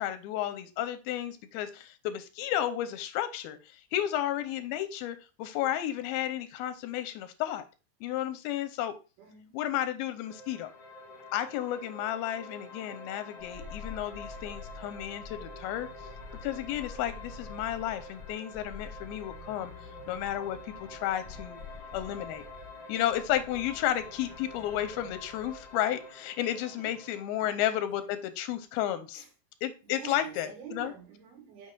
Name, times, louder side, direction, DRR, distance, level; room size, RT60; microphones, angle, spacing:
voice 1, 0.0-7.6 8.0-8.9 9.5-10.7 11.3-15.9 16.4-19.7 20.1-21.6 21.9-22.4 22.9-29.2 29.6-30.9, left 12 dB, 90° left, 2.5 m, -32 dB
voice 2, 9.2-9.7 26.8-27.0 27.4-28.1 29.1-29.3 29.8-31.7, right 8 dB, 80° right, 3.6 m, -48 dB
sound 1, 10.3-27.2, left 2 dB, 35° left, 1.5 m, -47 dB
sound 2, 13.4-25.8 26.0-26.1, left 3 dB, 25° right, 1.5 m, -48 dB
7.4 x 6.4 x 2.4 m
omnidirectional pair, 4.4 m